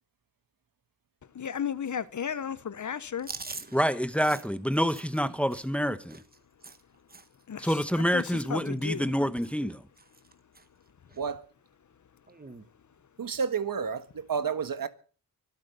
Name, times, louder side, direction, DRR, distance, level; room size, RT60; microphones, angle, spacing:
voice 1, 1.3-3.5 7.5-9.1, left 7 dB, 50° left, 0.8 m, -34 dB
Chewing mastication, 3.2-7.4 7.7-8.0 8.2-9.2 9.4-9.7 10.0-10.7 11.1-11.2 12.3-12.7, right 3 dB, 25° right, 1.3 m, -45 dB
voice 2, 3.7-6.2 7.6-9.8, equal, 5° left, 1.0 m, -27 dB
voice 3, 13.2-14.9, right 6 dB, 65° right, 1.6 m, -30 dB
24.0 x 8.2 x 6.8 m
wide cardioid pair, 105°, 36 cm